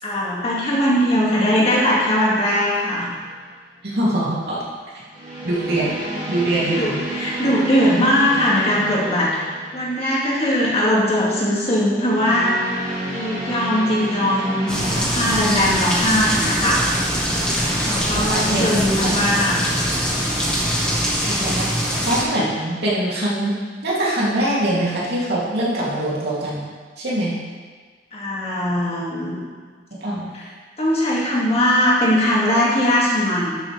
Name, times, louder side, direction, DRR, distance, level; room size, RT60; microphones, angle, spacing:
voice 1, 0.0-3.1 6.6-9.4 9.7-12.6 13.1-16.8 17.7-19.6 28.1-29.4 30.3-30.5 30.8-33.5, equal, 35° left, -6 dB, 2.2 m, -20 dB
sound 1, 3.1-3.5 5.1-10.2 12.0-15.0, right 1 dB, 45° right, 3.1 m, -30 dB
voice 2, 3.8-4.6 5.4-5.9 6.3-7.0 18.1-19.1 21.3-21.7 22.1-23.5 23.8-26.6 27.0-27.4 30.0-30.3, right 1 dB, 65° right, -7 dB, 2.8 m, -23 dB
sound 2, 14.7-22.2, equal, 5° left, 1.6 m, -22 dB
12.5 x 6.9 x 3.4 m, 1.5 s
head